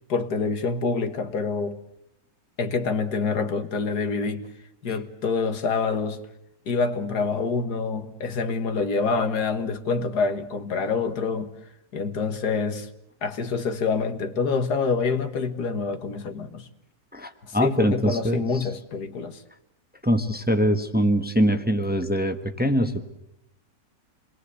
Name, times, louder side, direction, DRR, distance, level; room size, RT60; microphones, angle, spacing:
voice 1, 0.1-1.8 2.6-4.5 4.8-6.2 6.7-11.5 11.9-12.9 13.2-16.7 17.4-19.4, left 4 dB, 85° left, 2.1 m, -26 dB
voice 2, 17.1-18.7 20.0-23.0, equal, 5° right, 1.1 m, -23 dB
28.0 x 21.0 x 8.2 m
omnidirectional pair, 1.7 m